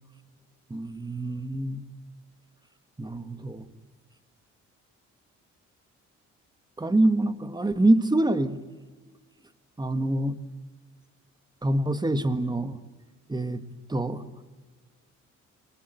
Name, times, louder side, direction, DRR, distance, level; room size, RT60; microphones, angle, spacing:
voice 1, 0.7-1.8 3.0-3.7 6.8-8.6 9.8-10.3 11.6-12.8 13.3-13.6 13.9-14.4, right 1 dB, 15° right, 11 dB, 1.6 m, -25 dB
25.5 x 20.0 x 7.8 m, 1.3 s
cardioid pair, 90°, 30 cm